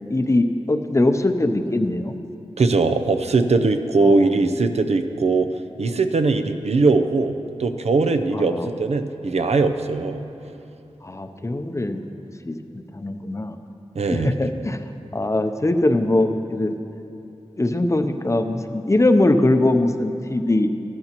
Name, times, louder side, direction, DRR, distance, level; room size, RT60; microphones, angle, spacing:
voice 1, 0.1-2.1 4.0-4.3 8.3-8.7 11.0-12.0 12.5-12.6 12.9-13.6 14.1-14.8 15.1-16.8 17.6-20.7, left 2 dB, 25° left, 7 dB, 0.6 m, -21 dB
voice 2, 2.6-5.5 5.8-7.3 7.6-10.2 14.0-14.3, right 3 dB, 80° right, 7 dB, 0.5 m, -20 dB
14.5 x 12.0 x 3.0 m, 2.7 s
wide cardioid pair, 70°, 11 cm